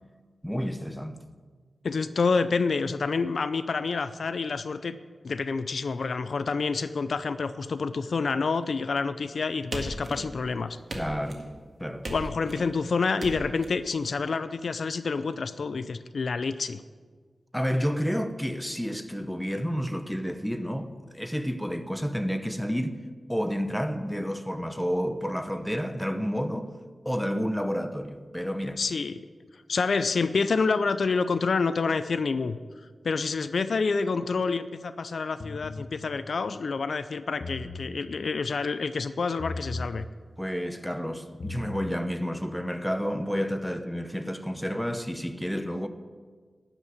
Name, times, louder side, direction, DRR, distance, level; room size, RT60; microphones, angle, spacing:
voice 1, 0.4-1.2 10.9-11.4 11.8-12.1 17.5-23.0 23.3-26.7 27.0-28.8 40.4-45.9, equal, 5° left, 0.8 m, -30 dB
voice 2, 1.8-5.0 5.2-10.8 12.1-16.8 28.8-29.2 29.7-32.6 33.0-40.1, left 4 dB, 75° left, 0.4 m, -28 dB
sound 1, 9.7-10.5 10.9-11.5 12.0-12.7 13.2-13.7, right 1 dB, 55° right, 1.8 m, -37 dB
sound 2, 35.4-35.9 37.3-37.9 39.4-39.9 41.3-41.9, left 2 dB, 55° left, 0.9 m, -37 dB
12.0 x 5.9 x 9.3 m
wide cardioid pair, 85°, 0 cm